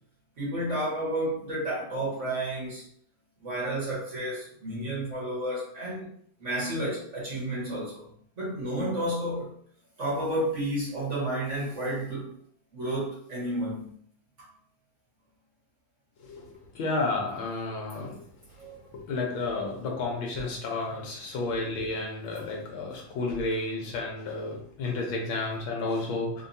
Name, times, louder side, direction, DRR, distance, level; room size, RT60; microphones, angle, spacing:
voice 1, 0.4-2.8 3.4-6.1 6.4-8.1 8.4-9.5 10.0-12.4 12.7-13.9 18.6-18.8, right 1 dB, 40° right, -7 dB, 1.5 m, -31 dB
voice 2, 16.2-18.2 19.1-26.5, left 3 dB, 80° left, -1 dB, 1.6 m, -31 dB
3.7 x 2.7 x 2.6 m, 0.62 s
omnidirectional pair, 2.1 m